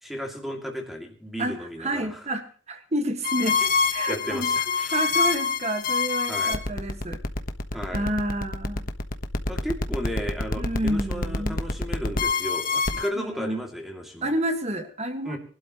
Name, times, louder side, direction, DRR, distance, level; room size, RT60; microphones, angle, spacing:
voice 1, 0.0-2.2 4.1-5.0 6.3-6.6 7.7-8.1 9.5-14.3 15.2-15.4, equal, ahead, 2 dB, 2.6 m, -34 dB
voice 2, 1.4-4.5 4.9-7.2 7.9-8.8 10.6-11.6 13.2-13.6 14.2-15.4, right 1 dB, 35° right, 7 dB, 1.8 m, -29 dB
sound 1, 3.2-13.1, left 4 dB, 45° left, 1.3 m, -26 dB
23.0 x 12.0 x 3.1 m, 0.41 s
head